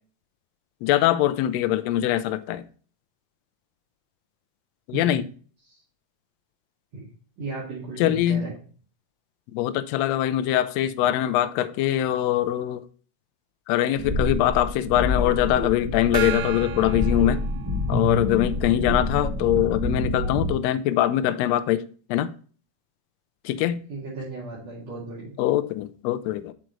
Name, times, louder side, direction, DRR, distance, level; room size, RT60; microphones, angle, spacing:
voice 1, 0.8-2.6 4.9-5.2 8.0-8.5 9.5-12.8 13.7-17.4 17.9-21.8 22.1-22.3 23.4-23.8 25.4-26.5, left 12 dB, 90° left, 1.5 m, -23 dB
voice 2, 4.9-5.2 6.9-7.0 7.4-8.5 23.9-25.3, right 3 dB, 55° right, 3.2 m, -35 dB
sound 1, 13.9-20.5, left 1 dB, 10° right, 1.5 m, -27 dB
Gong, 16.1-18.2, right 12 dB, 85° right, 2.2 m, -34 dB
7.6 x 6.6 x 3.0 m
omnidirectional pair, 3.6 m